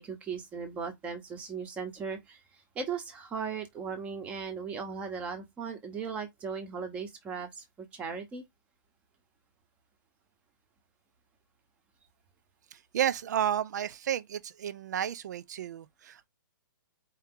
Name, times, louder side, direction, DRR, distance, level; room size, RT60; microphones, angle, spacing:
voice 1, 0.0-8.4, right 5 dB, 10° right, 0.9 m, -38 dB
voice 2, 12.7-16.3, right 10 dB, 55° right, 0.6 m, -32 dB
4.7 x 2.9 x 3.7 m
hypercardioid pair, 165°, 11 cm